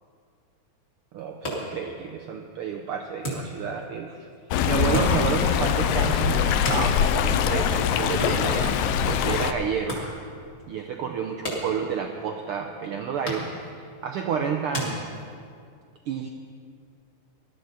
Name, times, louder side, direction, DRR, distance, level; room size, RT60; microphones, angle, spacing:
voice 1, 1.1-4.3 4.7-10.0 10.7-15.0 16.1-16.3, right 7 dB, 85° right, 4 dB, 1.2 m, -30 dB
sound 1, 1.2-15.7, equal, 30° left, 3.3 m, -38 dB
Stream, 4.5-9.5, left 8 dB, 80° left, 1.4 m, -23 dB
19.0 x 12.5 x 4.1 m, 2.2 s
omnidirectional pair, 3.3 m